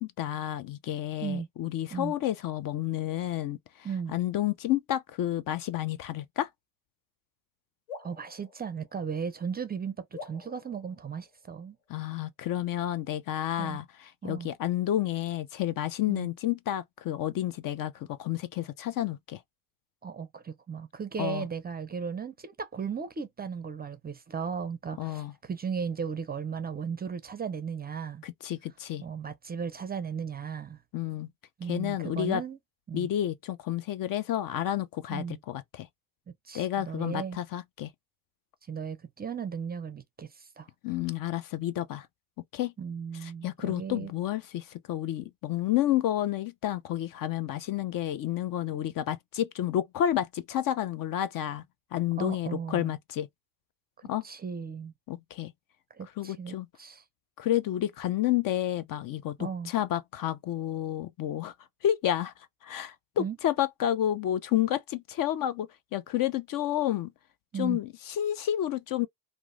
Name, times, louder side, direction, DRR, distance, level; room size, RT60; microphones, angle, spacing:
voice 1, 0.0-3.6 4.1-6.5 11.9-13.8 14.2-19.4 21.2-21.5 25.0-25.3 28.2-29.0 30.9-31.3 31.7-32.4 32.9-35.9 36.5-37.9 40.8-42.1 42.5-42.7 43.2-51.6 51.9-53.3 54.1-54.2 55.1-55.5 56.2-56.7 57.4-61.5 61.8-62.3 62.6-67.1 67.6-69.1, left 12 dB, 50° left, 0.4 m, -30 dB
sound 1, 7.9-9.5 10.1-11.8, left 4 dB, 70° left, 1.4 m, -48 dB
voice 2, 8.0-11.8 13.6-13.8 14.2-14.5 16.1-16.3 20.0-28.2 29.0-30.8 31.6-32.6 32.9-33.1 35.1-35.4 36.5-37.4 38.7-40.7 42.8-44.1 52.2-52.9 54.2-54.9 55.9-57.0 59.4-59.7 63.2-63.4 67.5-67.8, right 6 dB, 20° right, 0.4 m, -36 dB
2.9 x 2.1 x 2.5 m
supercardioid pair, 80°, 45 cm